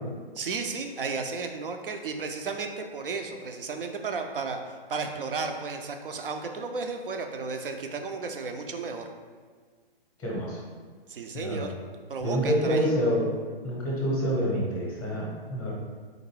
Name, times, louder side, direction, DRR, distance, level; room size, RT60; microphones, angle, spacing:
voice 1, 0.3-9.1 11.1-11.7 12.1-12.9, right 4 dB, 65° right, 5 dB, 0.6 m, -33 dB
voice 2, 10.2-10.6 11.3-11.7 12.2-13.3 13.6-15.7, equal, 5° left, -4 dB, 0.7 m, -27 dB
3.9 x 2.6 x 4.6 m, 1.5 s
figure-of-eight pair, 130°, 29 cm